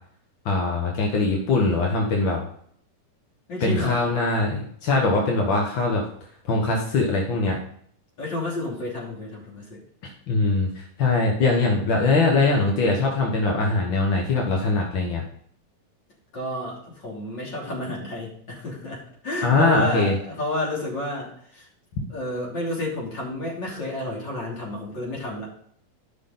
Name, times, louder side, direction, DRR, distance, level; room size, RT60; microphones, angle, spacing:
voice 1, 0.4-2.4 3.6-6.0 6.5-7.6 10.3-15.2 19.4-20.1 22.0-22.1, left 3 dB, 55° left, -1 dB, 1.4 m, -22 dB
voice 2, 3.5-4.0 8.2-9.8 16.3-21.7 22.1-25.5, left 1 dB, 30° left, -3 dB, 3.3 m, -30 dB
12.5 x 6.0 x 3.9 m, 0.63 s
omnidirectional pair, 4.1 m